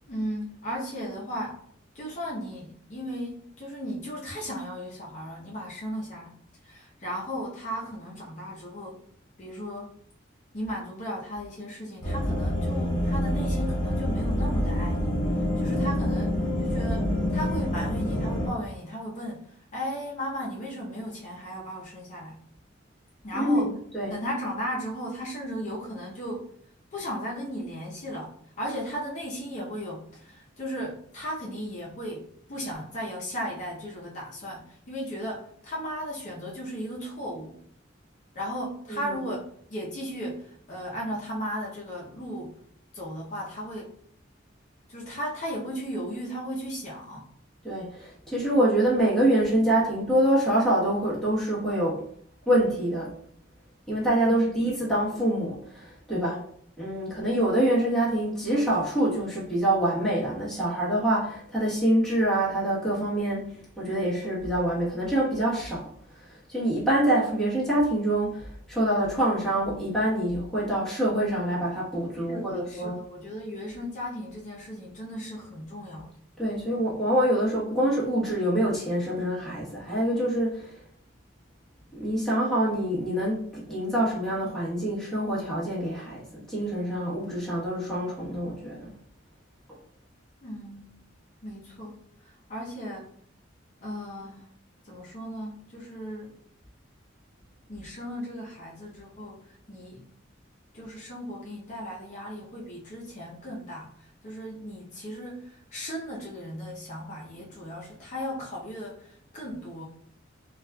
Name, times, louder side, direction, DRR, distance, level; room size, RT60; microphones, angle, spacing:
voice 1, 0.1-1.6 1.9-6.4 6.6-9.0 9.4-9.9 10.5-22.4 23.2-23.7 24.1-26.5 26.9-37.6 38.3-42.6 42.9-44.0 44.9-47.3 54.2-54.6 72.3-76.1 90.4-91.0 91.4-93.1 93.8-94.5 94.8-96.4 97.7-100.1 100.7-109.8, equal, 40° left, -4 dB, 0.6 m, -36 dB
sound 1, 12.0-18.5, left 1 dB, 20° left, 1.5 m, -27 dB
voice 2, 23.3-24.2 38.9-39.1 47.6-52.0 52.5-53.1 53.9-56.4 56.8-65.9 66.2-66.3 66.5-73.0 76.4-80.7 81.9-88.9, right 1 dB, ahead, -8 dB, 1.1 m, -25 dB
4.0 x 2.4 x 2.2 m, 0.62 s
head